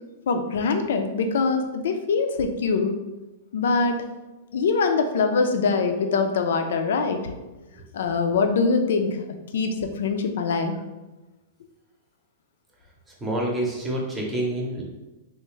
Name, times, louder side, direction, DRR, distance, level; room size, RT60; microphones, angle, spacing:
voice 1, 0.3-2.9 3.5-4.0 4.5-7.3 7.9-9.2 9.5-10.7, left 4 dB, 80° left, 6 dB, 0.4 m, -23 dB
voice 2, 13.1-14.8, right 1 dB, 10° right, -3 dB, 0.7 m, -28 dB
3.5 x 2.5 x 3.1 m, 1.1 s
supercardioid pair, 160°, 0 cm